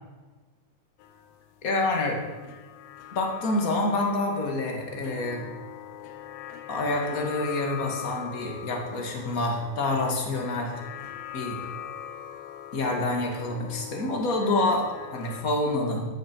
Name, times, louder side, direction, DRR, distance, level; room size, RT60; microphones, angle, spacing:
sound 1, 1.0-15.4, left 10 dB, 80° left, 1.6 m, -42 dB
voice 1, 1.6-2.2 3.1-5.5 6.7-10.7 11.3-11.6 12.7-16.1, left 2 dB, 30° left, 1 dB, 1.9 m, -27 dB
14.0 x 12.0 x 4.7 m, 1.3 s
omnidirectional pair, 4.4 m